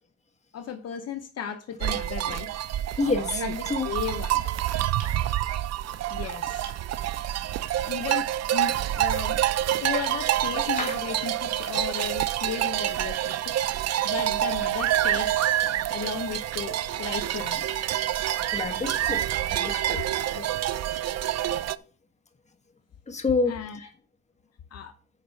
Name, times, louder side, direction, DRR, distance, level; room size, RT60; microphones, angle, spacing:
voice 1, 0.5-2.5 3.4-4.4 6.1-6.7 7.8-9.4 9.8-13.5 14.0-17.6 20.3-20.8 23.5-23.8 24.7-24.9, left 7 dB, 55° left, 7 dB, 0.9 m, -35 dB
sound 1, 1.8-21.8, right 12 dB, 60° right, 0.5 m, -27 dB
voice 2, 3.0-3.9 7.3-7.4 9.9-10.0 10.8-11.0 18.5-19.2 19.5-20.0 23.1-23.9, left 3 dB, 20° left, 6 dB, 1.5 m, -28 dB
sound 2, 3.3-3.5 5.0-5.2 6.0-6.1 6.6-6.8 8.2-8.4 10.0-10.2 11.6-11.8 13.3-13.5 14.8-15.0 17.7-17.9 18.7-18.8 19.3-19.6, right 6 dB, 90° right, 2.5 m, -46 dB
10.0 x 4.3 x 5.8 m, 0.39 s
cardioid pair, 130°, 30 cm